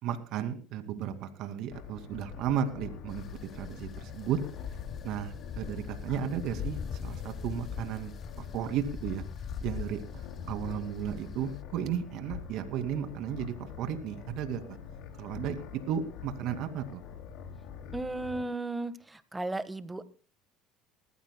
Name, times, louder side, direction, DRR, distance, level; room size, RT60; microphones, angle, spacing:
voice 1, 0.0-4.4 5.0-8.1 8.4-9.2 9.6-10.0 10.5-14.8 15.2-17.0, right 9 dB, 65° right, 7 dB, 2.3 m, -34 dB
sound 1, 1.7-18.4, left 7 dB, 65° left, 2.6 m, -46 dB
sound 2, 3.1-11.6, left 7 dB, 40° left, 0.7 m, -41 dB
voice 2, 17.9-20.0, right 2 dB, 10° right, 12 dB, 1.4 m, -35 dB
20.5 x 15.0 x 2.2 m, 0.38 s
supercardioid pair, 90°, 0 cm